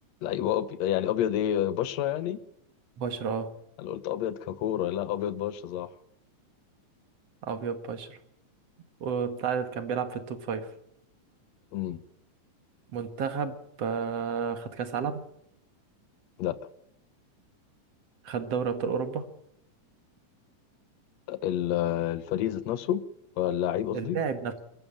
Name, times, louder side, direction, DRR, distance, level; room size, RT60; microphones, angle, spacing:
voice 1, 0.2-2.4 3.8-5.9 11.7-12.0 16.4-16.6 21.3-23.0 23.4-24.2, left 11 dB, 65° left, 14 dB, 2.0 m, -29 dB
voice 2, 3.0-3.5 7.4-8.2 9.0-10.7 12.9-15.2 18.2-19.3 23.9-24.5, right 6 dB, 55° right, 9 dB, 2.4 m, -31 dB
22.0 x 14.5 x 8.8 m, 0.80 s
omnidirectional pair, 3.6 m